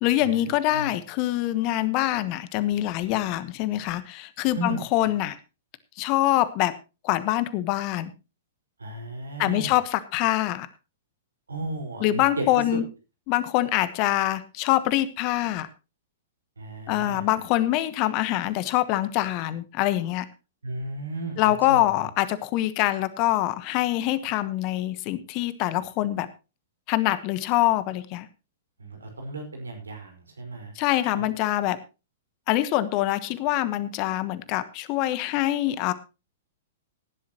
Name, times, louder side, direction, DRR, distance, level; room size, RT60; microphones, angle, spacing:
voice 1, 0.0-5.4 6.0-6.7 7.0-8.1 9.4-10.7 12.0-12.8 13.3-15.7 16.9-20.3 21.4-26.3 26.9-28.3 30.8-31.8 32.5-35.9, left 15 dB, 35° left, 16 dB, 1.1 m, -24 dB
voice 2, 8.8-9.7 11.5-12.6 16.6-17.2 20.6-21.9 28.8-30.7 31.1-31.3, right 2 dB, 75° right, 4 dB, 4.9 m, -34 dB
17.0 x 11.5 x 3.0 m, 0.29 s
figure-of-eight pair, 105°, 0 cm